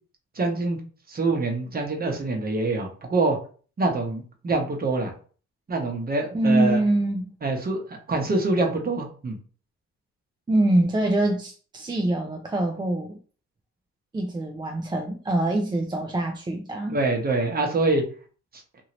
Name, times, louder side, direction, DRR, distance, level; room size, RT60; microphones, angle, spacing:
voice 1, 0.3-0.8 1.1-3.4 3.8-5.1 5.7-6.8 7.4-9.4 16.9-18.0, right 3 dB, 30° right, 3 dB, 0.9 m, -25 dB
voice 2, 6.3-7.3 10.5-13.2 14.1-17.0, right 1 dB, 15° right, 2 dB, 0.4 m, -24 dB
2.8 x 2.7 x 2.9 m, 0.41 s
cardioid pair, 90°, 30 cm